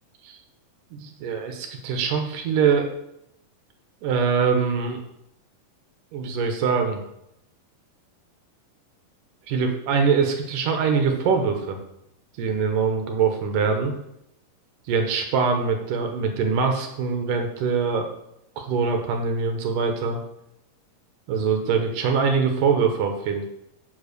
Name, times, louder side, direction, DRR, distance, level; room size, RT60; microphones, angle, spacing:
voice 1, 0.9-2.9 4.0-5.0 6.1-7.0 9.5-11.8 12.4-13.9 14.9-18.1 18.6-20.2 21.3-23.5, right 5 dB, 75° right, 4 dB, 2.6 m, -23 dB
7.8 x 4.7 x 6.6 m, 0.80 s
omnidirectional pair, 3.9 m